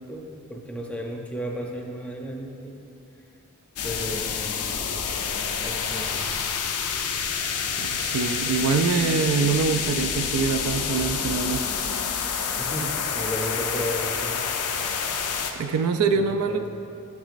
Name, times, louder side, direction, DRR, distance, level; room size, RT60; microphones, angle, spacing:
voice 1, 0.1-2.8 3.8-4.8 5.6-6.3 12.6-14.9 15.2-15.3 16.5-16.7, equal, 5° left, 0 dB, 0.5 m, -34 dB
sound 1, 3.8-15.5, left 6 dB, 85° left, 0.5 m, -28 dB
voice 2, 7.8-11.6 15.6-16.7, right 5 dB, 85° right, 8 dB, 0.4 m, -24 dB
9.4 x 6.0 x 2.5 m, 2.7 s
head